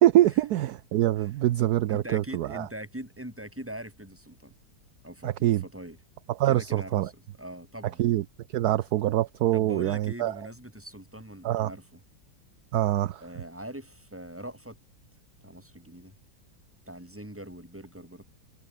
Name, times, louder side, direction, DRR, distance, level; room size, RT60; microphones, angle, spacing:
voice 1, 0.0-2.7 5.2-5.6 6.4-7.1 8.0-8.2 8.5-10.4 11.4-11.7 12.7-13.2, right 14 dB, 65° right, 1.0 m, -24 dB
voice 2, 1.9-4.5 5.0-6.0 6.4-7.1 7.4-8.0 9.5-12.0 13.2-14.8 15.4-16.2 16.9-18.2, right 1 dB, 5° right, 4.1 m, -42 dB
omnidirectional pair, 2.1 m